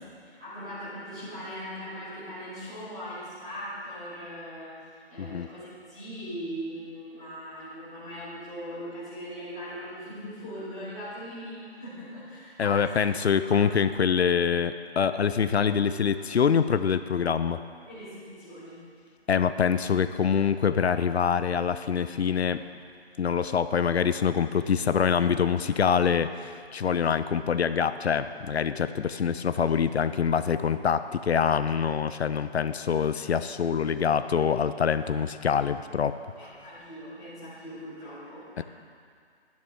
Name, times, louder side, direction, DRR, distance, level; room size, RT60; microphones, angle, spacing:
voice 1, 0.4-4.8 5.1-13.0 13.4-13.7 17.9-18.8 36.4-38.6, equal, 5° right, -16 dB, 1.1 m, -40 dB
voice 2, 12.6-17.6 19.3-22.6 23.2-36.2 38.6-38.7, left 7 dB, 80° left, 12 dB, 0.6 m, -25 dB
13.0 x 10.5 x 3.6 m, 2.1 s
hypercardioid pair, 180°, 32 cm